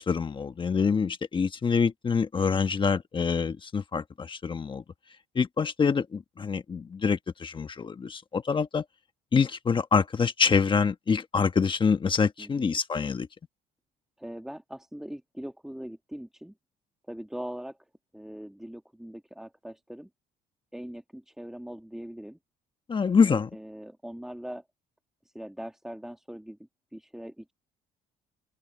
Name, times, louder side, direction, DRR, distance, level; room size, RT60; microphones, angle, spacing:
voice 1, 0.0-4.8 5.3-8.8 9.3-13.3 22.9-23.5, left 5 dB, 30° left, 1.3 m, -26 dB
voice 2, 14.2-16.5 17.1-17.8 18.1-20.1 20.7-22.4 23.2-24.6 25.2-26.6 26.9-27.5, equal, 5° right, 1.8 m, -41 dB
cardioid pair, 110°, 17 cm